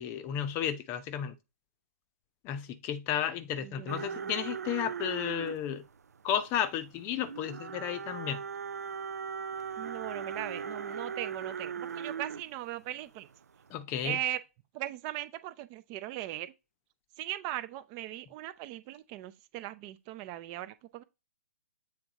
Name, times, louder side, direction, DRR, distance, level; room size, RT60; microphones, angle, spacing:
voice 1, 0.0-1.3 2.4-5.8 6.2-8.4 13.7-14.2, left 9 dB, 25° left, 0.7 m, -33 dB
voice 2, 3.6-4.3 9.8-13.3 14.0-14.4 14.7-16.5 17.2-21.0, right 14 dB, 30° right, 0.5 m, -39 dB
sound 1, 3.9-12.5 13.0-13.3 13.6-13.7, right 6 dB, 80° right, 0.5 m, -39 dB
7.7 x 3.5 x 4.0 m
hypercardioid pair, 135°, 9 cm